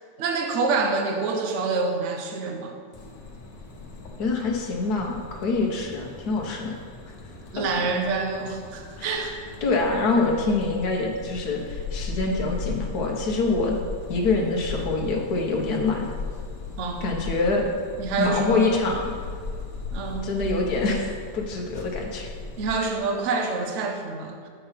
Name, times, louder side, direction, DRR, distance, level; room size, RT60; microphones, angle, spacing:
voice 1, 0.2-2.7 7.5-9.4 16.8-17.1 18.0-18.8 19.9-20.3 22.6-24.5, right 4 dB, 50° right, 3 dB, 1.0 m, -27 dB
sound 1, 2.9-22.7, left 3 dB, 80° left, 1.7 m, -37 dB
voice 2, 4.2-6.7 7.6-7.7 9.0-9.2 9.6-13.8 14.1-16.1 17.0-17.7 18.2-19.1 20.2-22.3, left 3 dB, 60° left, 0 dB, 1.6 m, -25 dB
6.9 x 5.5 x 5.7 m, 2.1 s
omnidirectional pair, 1.9 m